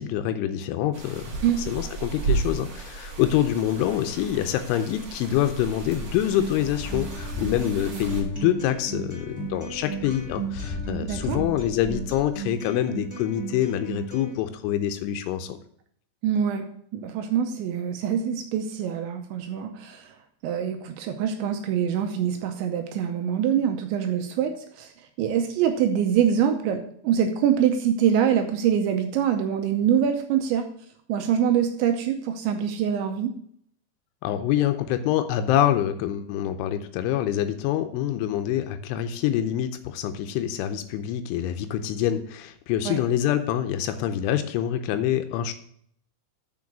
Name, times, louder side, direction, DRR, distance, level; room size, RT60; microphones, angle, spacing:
voice 1, 0.0-15.6 34.2-45.5, left 11 dB, 80° left, 9 dB, 3.0 m, -26 dB
sound 1, 0.9-8.2, right 4 dB, 60° right, 1.5 m, -34 dB
sound 2, 6.3-12.6, left 3 dB, 40° left, 2.9 m, -38 dB
Acoustic guitar, 6.3-14.3, right 5 dB, 5° right, 1.3 m, -36 dB
voice 2, 11.0-11.4 16.2-16.7 16.9-20.1 20.4-24.9 25.2-30.7 31.1-33.3 42.9-43.0, right 8 dB, 80° right, 5 dB, 2.8 m, -24 dB
6.7 x 6.2 x 7.1 m, 0.65 s
omnidirectional pair, 5.7 m